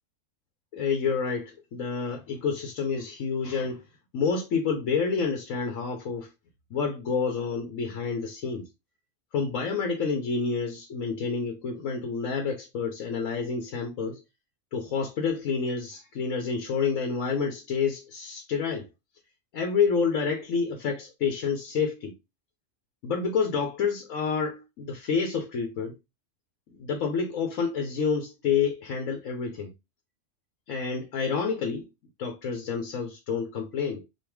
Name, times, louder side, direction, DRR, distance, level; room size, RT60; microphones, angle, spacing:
voice 1, 0.7-3.8 4.1-6.3 6.7-8.6 9.3-14.2 14.7-18.9 19.5-22.1 23.0-26.0 26.7-29.7 30.7-31.9 32.2-34.0, left 5 dB, 85° left, 1.3 m, -28 dB
5.4 x 2.5 x 3.4 m
omnidirectional pair, 1.3 m